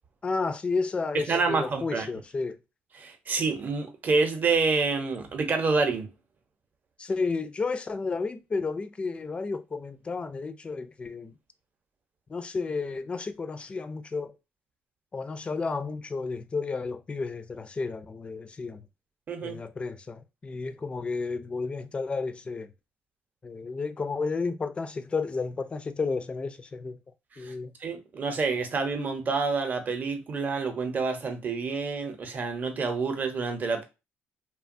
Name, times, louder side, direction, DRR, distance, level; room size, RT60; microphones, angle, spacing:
voice 1, 0.2-2.6 7.0-11.3 12.3-14.3 15.1-18.9 19.4-22.7 23.4-27.0 27.4-27.8, left 4 dB, 25° left, 0.3 m, -32 dB
voice 2, 1.3-2.1 3.0-6.1 19.3-19.6 27.4-27.5 27.8-33.8, right 4 dB, 40° right, 0.7 m, -28 dB
2.8 x 2.2 x 2.5 m
cardioid pair, 105°, 4 cm